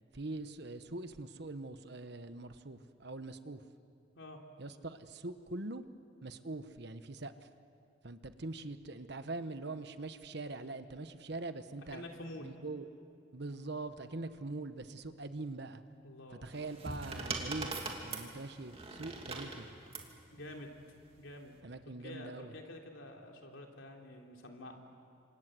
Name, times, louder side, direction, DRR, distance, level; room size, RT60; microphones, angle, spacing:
voice 1, 0.1-3.6 4.6-5.8 6.2-7.5 8.0-12.0 12.4-12.9 13.3-15.8 16.3-19.7 21.6-22.5, right 2 dB, 55° right, 10 dB, 1.2 m, -43 dB
voice 2, 11.9-12.5 16.0-16.5 20.3-20.7 21.2-21.6 21.8-24.8, left 1 dB, 80° left, 2 dB, 3.2 m, -48 dB
sound 1, 16.4-20.1 21.2-21.6, right 3 dB, 30° right, 2.7 m, -41 dB
28.5 x 26.0 x 7.7 m, 2.4 s
head